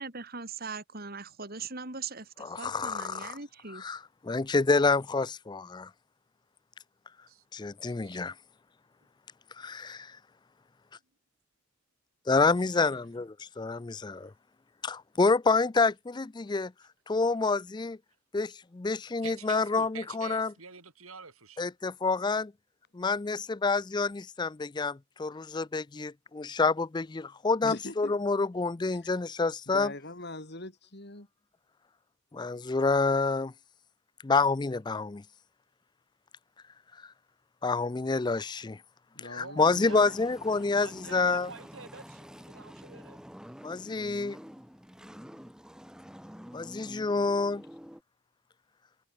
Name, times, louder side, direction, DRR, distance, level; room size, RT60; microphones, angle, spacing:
voice 1, 0.0-3.8, right 4 dB, 45° right, 3.3 m, -40 dB
voice 2, 2.4-3.4 3.7-5.9 7.5-8.3 9.6-9.8 12.3-14.3 14.8-16.7 17.1-18.0 18.3-20.5 21.6-22.5 22.9-29.9 32.3-33.5 34.2-35.2 37.0-37.1 37.6-38.8 39.2-41.5 43.6-44.4 46.5-47.6, left 3 dB, 20° left, 0.4 m, -28 dB
voice 3, 7.3-8.2 19.2-21.7, right 6 dB, 90° right, 4.5 m, -47 dB
voice 4, 12.6-13.0 39.4-40.1 40.7-43.2, right 3 dB, 65° right, 4.1 m, -47 dB
voice 5, 27.6-28.1 28.9-29.1 29.7-31.3 39.1-40.1, left 2 dB, 50° left, 3.2 m, -42 dB
sound 1, 39.8-48.0, equal, 5° right, 7.9 m, -48 dB
head